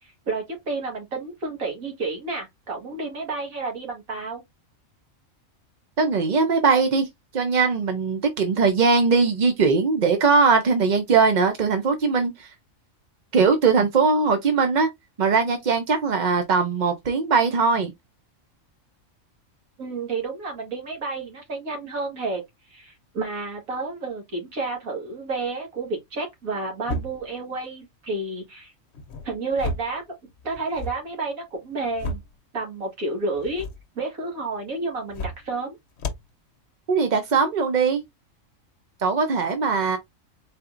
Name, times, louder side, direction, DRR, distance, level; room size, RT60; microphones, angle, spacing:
voice 1, 0.0-4.4 19.8-22.4 22.7-28.7 29.2-30.0 30.4-32.2 32.5-33.7 34.0-35.8, right 3 dB, 85° right, 2.2 m, -30 dB
voice 2, 6.0-7.1 7.3-12.5 13.3-14.9 15.2-17.9 36.9-38.0 39.0-40.0, right 4 dB, 50° right, 0.6 m, -20 dB
sound 1, 26.8-27.4 28.9-30.0 30.4-31.0 31.6-32.4 33.3-33.8 35.0-35.5 36.0-36.3, left 1 dB, 60° left, 0.9 m, -33 dB
4.2 x 4.0 x 2.5 m
omnidirectional pair, 1.4 m